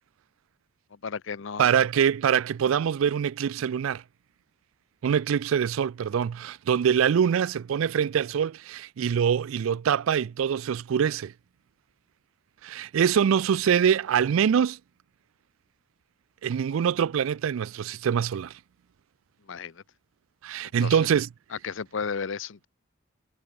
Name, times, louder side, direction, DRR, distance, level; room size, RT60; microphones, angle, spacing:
voice 1, 1.0-1.7 19.5-19.8 20.8-21.0 21.5-22.7, left 5 dB, 65° left, 0.6 m, -33 dB
voice 2, 1.6-4.0 5.0-11.3 12.6-14.8 16.4-18.5 20.4-21.3, right 8 dB, 75° right, 0.3 m, -24 dB
head